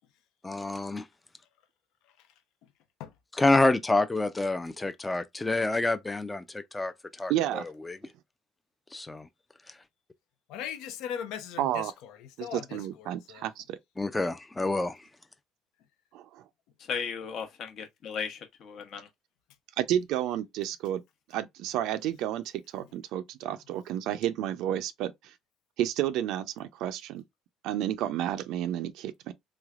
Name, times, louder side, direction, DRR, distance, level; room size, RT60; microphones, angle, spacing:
voice 1, 0.4-1.1 3.3-6.9 7.2-8.0 8.9-9.3 14.0-15.0, left 2 dB, 15° left, 0.4 m, -27 dB
voice 2, 7.3-7.6 11.6-11.9 12.4-13.8 16.1-16.4 19.8-21.0 21.3-25.3 25.8-27.2 27.6-29.3, right 12 dB, 75° right, 0.4 m, -31 dB
voice 3, 10.5-13.5, left 9 dB, 80° left, 0.6 m, -39 dB
voice 4, 16.9-19.1, left 6 dB, 60° left, 0.9 m, -36 dB
3.4 x 3.2 x 2.4 m
cardioid pair, 100°, 0 cm